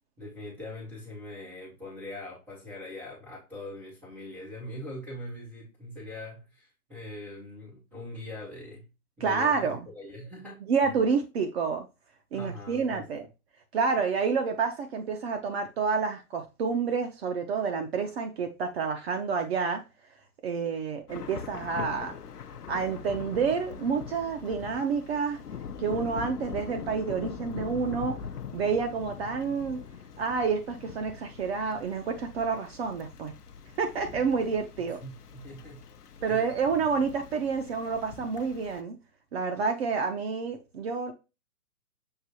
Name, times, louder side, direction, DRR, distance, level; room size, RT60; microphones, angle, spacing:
voice 1, 0.2-8.9 9.2-10.9 12.3-13.1 34.8-35.8 36.2-36.5, left 1 dB, 5° right, 0.4 m, -42 dB
voice 2, 9.2-9.8 10.7-11.8 12.3-13.3 13.7-19.8 20.4-22.1 22.7-25.4 25.8-28.1 28.5-29.8 30.2-33.3 33.8-35.0 36.2-38.9 39.3-41.1, right 5 dB, 45° right, 0.7 m, -29 dB
Thunder / Rain, 21.1-38.8, left 7 dB, 90° left, 0.7 m, -42 dB
6.6 x 2.6 x 2.9 m
hypercardioid pair, 130°, 45 cm